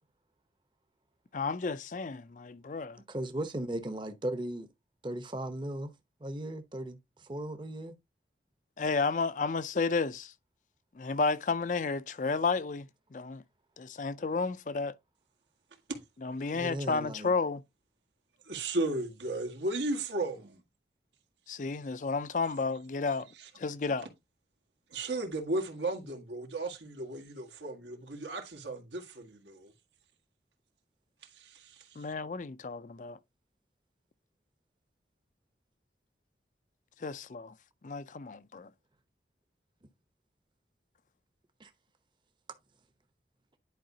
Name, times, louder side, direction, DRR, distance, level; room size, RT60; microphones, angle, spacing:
voice 1, 1.3-3.0 8.8-10.3 11.0-13.4 13.8-14.9 16.2-17.6 21.5-23.3 23.6-24.1 32.0-33.2 37.0-37.5 37.8-38.7, left 4 dB, 45° left, 0.4 m, -32 dB
voice 2, 3.1-4.7 5.0-5.9 6.2-7.0 7.2-7.9 16.5-17.3 41.6-41.7, right 1 dB, 25° right, 0.8 m, -36 dB
voice 3, 18.5-20.6 24.9-29.7 31.4-31.8, right 2 dB, 90° right, 1.8 m, -35 dB
10.5 x 4.8 x 2.7 m
head